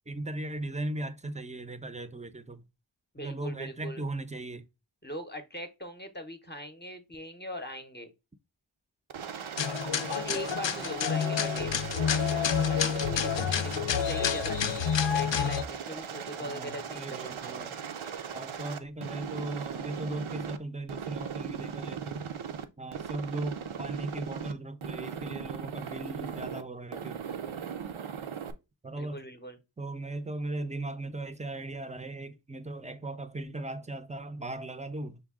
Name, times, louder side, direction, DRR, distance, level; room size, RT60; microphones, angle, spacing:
voice 1, 0.1-2.6 3.2-4.7 10.8-11.7 16.4-17.7 18.3-22.3 22.8-27.2 28.8-29.2 29.8-35.2, right 2 dB, 15° right, 0.5 m, -38 dB
voice 2, 3.1-4.0 5.0-8.1 10.1-17.4 29.0-29.6, equal, 20° left, 0.7 m, -41 dB
Aircraft, 9.1-20.6 20.9-22.6 22.9-24.5 24.8-26.6 26.9-28.5, right 7 dB, 80° right, 0.6 m, -38 dB
sound 1, 9.6-15.6, left 8 dB, 65° left, 0.5 m, -28 dB
6.1 x 2.2 x 3.5 m
wide cardioid pair, 55°, 48 cm